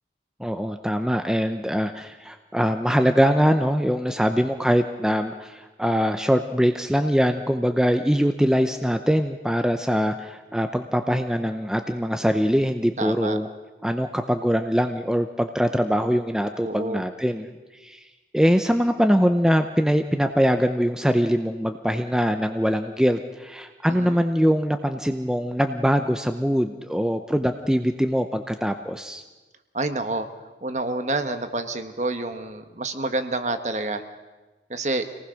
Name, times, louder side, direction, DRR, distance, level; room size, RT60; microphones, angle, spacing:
voice 1, 0.4-13.5 13.8-17.5 17.8-18.0 18.3-29.2, equal, 5° right, 7 dB, 0.6 m, -22 dB
voice 2, 13.0-13.4 16.6-17.0 23.9-24.2 29.7-30.3 30.6-34.0 34.7-35.1, right 2 dB, 40° right, 8 dB, 1.4 m, -28 dB
25.5 x 19.0 x 6.4 m, 1.2 s
head